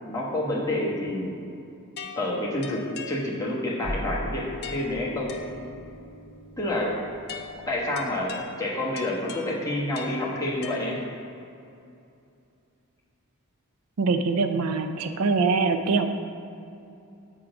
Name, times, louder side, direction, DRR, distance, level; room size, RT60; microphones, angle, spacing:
voice 1, 0.0-1.3 2.1-4.5 4.7-5.3 6.6-6.9 7.7-11.0, left 1 dB, 15° left, -5 dB, 1.1 m, -28 dB
sound 1, 2.0-3.7 4.6-6.0 7.3-11.4, left 4 dB, 45° left, 0.5 m, -41 dB
sound 2, 3.8-8.5, left 1 dB, 50° right, 1.6 m, -39 dB
voice 2, 14.0-16.1, right 4 dB, 85° right, 8 dB, 0.5 m, -23 dB
7.8 x 3.7 x 5.8 m, 2.6 s
head